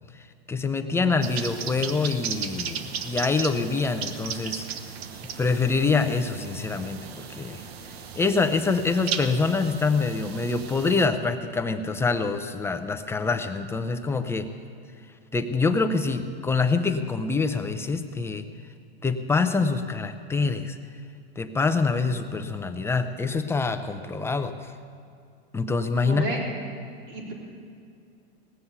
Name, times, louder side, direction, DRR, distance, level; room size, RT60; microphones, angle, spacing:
voice 1, 0.1-4.7 5.4-14.5 15.3-18.5 19.0-20.8 21.4-24.7 25.5-26.3, left 4 dB, 10° left, 7 dB, 0.6 m, -25 dB
sound 1, 1.2-11.1, right 7 dB, 80° right, 1.1 m, -36 dB
voice 2, 26.0-26.4 27.1-27.3, right 2 dB, 40° right, -3 dB, 4.1 m, -31 dB
18.5 x 7.1 x 8.1 m, 2.4 s
supercardioid pair, 130°, 31 cm